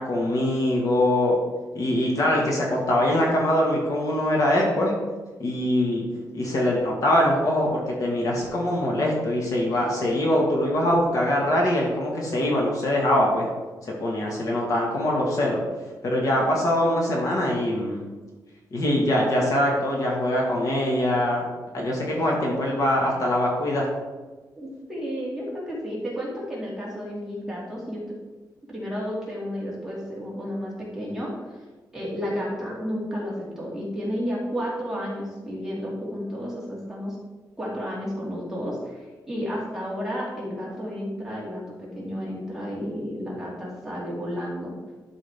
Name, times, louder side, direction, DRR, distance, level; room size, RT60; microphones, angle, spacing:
voice 1, 0.0-1.4 1.7-4.9 5.4-6.0 6.3-13.5 13.9-15.6 16.0-18.0 18.7-21.4 21.7-23.9, left 1 dB, 50° left, -2 dB, 1.7 m, -23 dB
voice 2, 24.6-28.0 28.7-31.3 31.9-37.2 37.6-44.8, equal, 5° right, -6 dB, 2.3 m, -32 dB
12.0 x 4.9 x 3.5 m, 1.3 s
wide cardioid pair, 180°, 7 cm